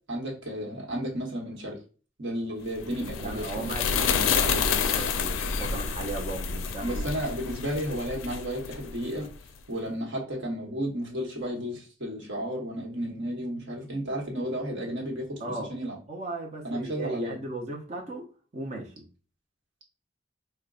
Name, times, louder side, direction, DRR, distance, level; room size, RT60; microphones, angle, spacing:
voice 1, 0.1-1.8 2.2-3.7 4.7-4.8 6.8-9.3 9.7-15.4 15.7-15.9 16.6-17.4, equal, 65° right, 1.1 m, -33 dB
sound 1, 2.8-9.4, left 6 dB, 85° left, 0.4 m, -29 dB
voice 2, 2.9-7.0 15.4-15.7 16.1-19.1, right 2 dB, 35° right, 0.6 m, -37 dB
5.0 x 2.1 x 2.4 m
head